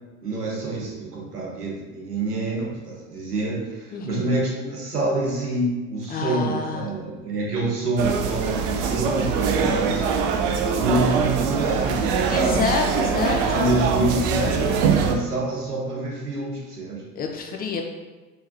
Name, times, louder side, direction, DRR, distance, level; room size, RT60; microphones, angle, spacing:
voice 1, 0.2-10.1 10.7-17.0, right 2 dB, 85° right, -3 dB, 1.2 m, -27 dB
voice 2, 3.9-4.3 6.1-6.9 12.3-13.7 17.1-17.8, left 4 dB, 20° left, 2 dB, 0.6 m, -27 dB
sound 1, 8.0-15.1, right 6 dB, 50° right, 0.6 m, -23 dB
4.5 x 3.7 x 2.7 m, 1.2 s
figure-of-eight pair, 75°, 45 cm